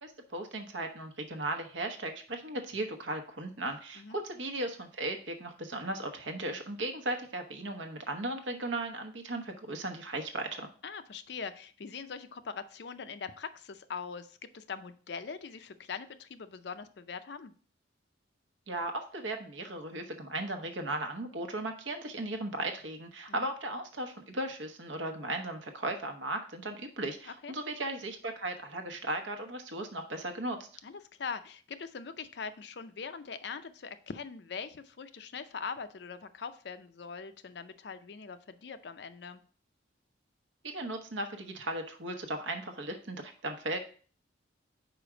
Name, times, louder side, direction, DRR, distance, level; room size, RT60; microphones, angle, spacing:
voice 1, 0.0-10.7 18.7-30.6 40.6-43.8, right 2 dB, 80° right, 6 dB, 1.0 m, -36 dB
voice 2, 10.8-17.5 23.3-23.5 27.4-27.5 30.8-39.4, left 5 dB, 60° left, 11 dB, 0.5 m, -42 dB
5.0 x 4.7 x 4.9 m, 0.43 s
head